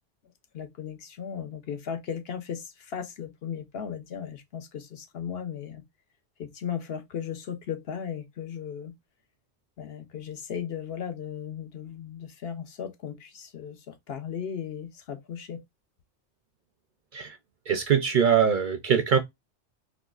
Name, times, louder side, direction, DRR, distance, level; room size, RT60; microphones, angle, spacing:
voice 1, 0.5-5.8 6.4-8.9 9.8-15.6, left 8 dB, 65° left, 0.9 m, -36 dB
voice 2, 17.7-19.2, right 7 dB, 55° right, 0.6 m, -22 dB
3.8 x 2.4 x 2.3 m
omnidirectional pair, 1.2 m